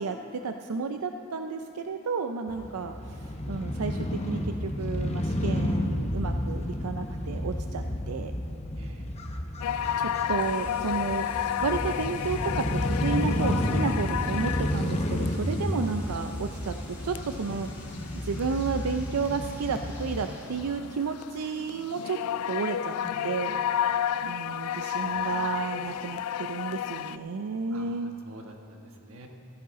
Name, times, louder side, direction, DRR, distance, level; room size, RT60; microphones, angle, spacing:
voice 1, 0.0-8.3 10.0-17.7 18.1-22.2 22.5-22.9 23.2-23.6 24.2-28.2, right 5 dB, 85° right, 6 dB, 0.5 m, -32 dB
Crow / Motorcycle, 2.5-20.4, left 1 dB, 30° left, 0.8 m, -31 dB
voice 2, 8.7-9.1 23.0-23.3 25.1-25.3 27.7-29.3, right 1 dB, 60° right, 2 dB, 1.4 m, -48 dB
sound 1, 9.6-27.2, left 9 dB, 85° left, 0.3 m, -33 dB
sound 2, 10.4-20.5, equal, 10° right, 3.8 m, -52 dB
16.0 x 15.0 x 3.7 m, 2.8 s
head